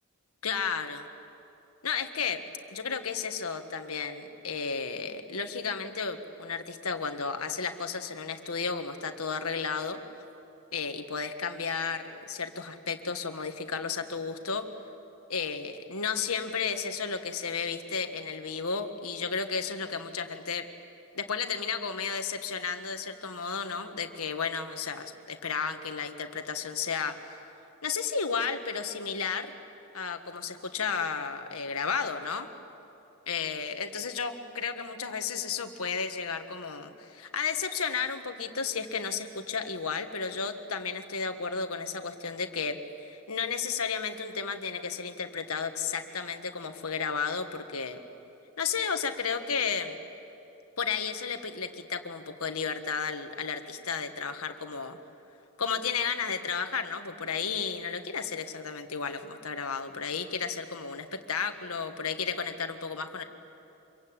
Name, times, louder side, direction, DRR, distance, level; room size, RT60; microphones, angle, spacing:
voice 1, 0.4-1.1 1.8-2.4 2.7-10.0 10.7-14.7 15.3-20.7 21.1-27.4 27.8-29.5 29.9-32.5 33.3-48.0 48.6-50.0 50.8-55.0 55.6-63.2, left 5 dB, 85° left, 6 dB, 1.6 m, -33 dB
26.0 x 23.0 x 8.9 m, 2.9 s
head